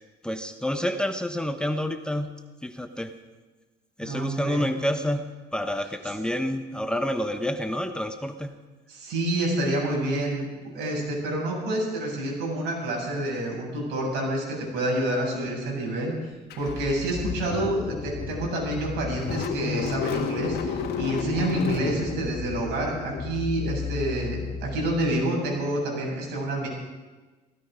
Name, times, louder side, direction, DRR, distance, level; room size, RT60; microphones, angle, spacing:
voice 1, 0.2-2.3 2.6-3.1 4.0-8.5, equal, 5° left, 7 dB, 1.1 m, -28 dB
voice 2, 4.0-4.6 8.9-10.5 10.7-16.1 16.6-26.7, right 1 dB, 85° right, -2 dB, 7.5 m, -28 dB
Car / Engine starting, 16.5-25.3, left 6 dB, 70° left, 1.8 m, -32 dB
16.5 x 16.0 x 5.2 m, 1.3 s
cardioid pair, 110°, 17 cm